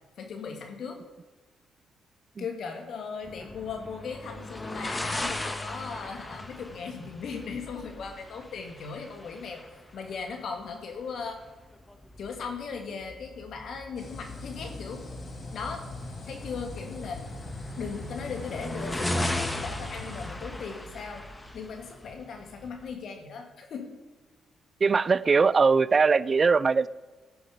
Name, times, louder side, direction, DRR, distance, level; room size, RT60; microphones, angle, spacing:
voice 1, 0.2-1.0 2.4-9.6 9.9-11.4 12.2-15.0 15.5-15.8 16.3-17.2 17.8-21.2 21.5-23.9, left 5 dB, 65° left, 4 dB, 1.9 m, -38 dB
sound 1, 3.2-22.9, left 1 dB, 15° left, 1.1 m, -38 dB
sound 2, 14.0-20.3, left 2 dB, 50° left, 1.7 m, -41 dB
voice 2, 24.8-26.9, right 5 dB, 40° right, 19 dB, 0.3 m, -21 dB
15.0 x 5.2 x 5.3 m, 1.3 s
supercardioid pair, 65°, 0 cm